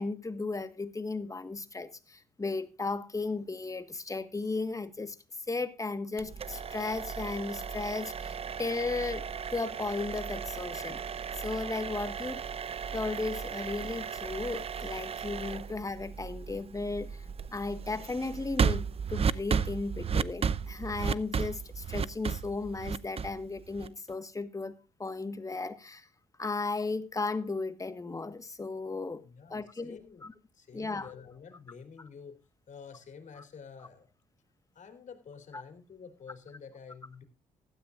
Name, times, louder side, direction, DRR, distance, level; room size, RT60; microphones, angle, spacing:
voice 1, 0.0-5.2 5.5-9.2 9.5-11.0 11.3-12.4 12.9-17.2 17.5-26.1 26.4-29.2 29.5-30.3 30.7-31.1 35.5-35.6, left 3 dB, 20° left, 1.4 m, -35 dB
sound 1, 6.2-24.1, right 6 dB, 40° right, 0.6 m, -35 dB
voice 2, 29.2-30.3 30.5-32.4 32.7-34.1 34.7-37.2, left 6 dB, 55° left, 3.3 m, -49 dB
16.0 x 12.5 x 2.5 m
cardioid pair, 75°, 15 cm